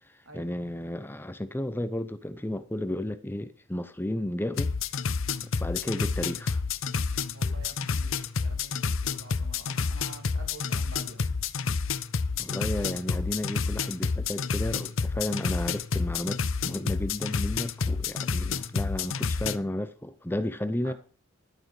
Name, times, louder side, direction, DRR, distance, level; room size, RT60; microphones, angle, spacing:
voice 1, 0.3-4.7 5.6-6.6 12.4-20.9, left 1 dB, 10° left, 0.6 m, -33 dB
sound 1, 4.5-19.6, left 5 dB, 70° left, 0.7 m, -29 dB
voice 2, 7.3-11.3 20.8-20.9, right 2 dB, 75° right, 2.9 m, -48 dB
11.5 x 9.2 x 4.9 m
head